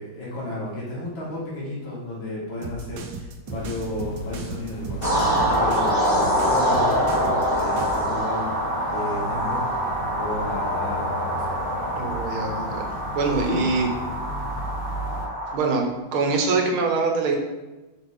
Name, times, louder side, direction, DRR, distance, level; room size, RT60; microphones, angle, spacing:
voice 1, 0.0-8.5 8.9-11.5 13.3-13.6, left 1 dB, 65° left, -6 dB, 3.0 m, -33 dB
sound 1, 2.6-8.1, right 3 dB, 65° right, 1.2 m, -36 dB
sound 2, 3.5-15.3, left 1 dB, 85° left, 1.9 m, -36 dB
sound 3, 5.0-15.5, equal, 30° left, 1.2 m, -25 dB
voice 2, 12.0-12.8 13.1-13.9 15.5-15.8 16.1-17.4, right 4 dB, 85° right, 2 dB, 1.9 m, -23 dB
7.4 x 5.4 x 3.6 m, 1.1 s
omnidirectional pair, 2.2 m